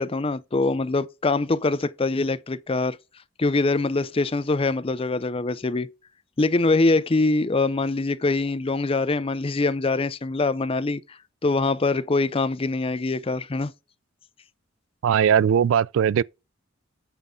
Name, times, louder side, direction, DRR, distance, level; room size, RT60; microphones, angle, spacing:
voice 1, 0.0-3.0 3.4-5.9 6.4-13.7, left 3 dB, 25° left, 0.5 m, -24 dB
voice 2, 15.0-16.2, right 8 dB, 65° right, 0.3 m, -19 dB
9.0 x 3.6 x 5.7 m
head